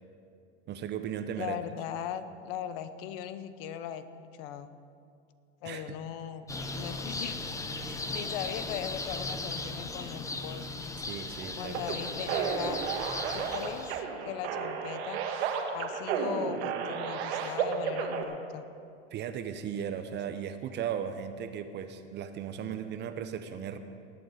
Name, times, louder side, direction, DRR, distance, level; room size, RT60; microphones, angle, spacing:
voice 1, 0.7-1.6 5.6-6.0 11.0-11.7 19.1-23.8, right 8 dB, 30° right, 9 dB, 0.7 m, -36 dB
voice 2, 1.4-4.1 4.3-4.7 5.6-6.5 6.7-7.4 7.9-10.8 11.6-12.8 13.3-14.0 14.2-15.2 15.7-18.7, left 10 dB, 55° left, 12 dB, 0.9 m, -39 dB
sound 1, 6.5-14.0, left 2 dB, 10° left, 0.8 m, -37 dB
sound 2, 11.7-18.2, right 6 dB, 70° right, 1.7 m, -33 dB
19.5 x 8.0 x 4.8 m, 2.4 s
hypercardioid pair, 110°, 34 cm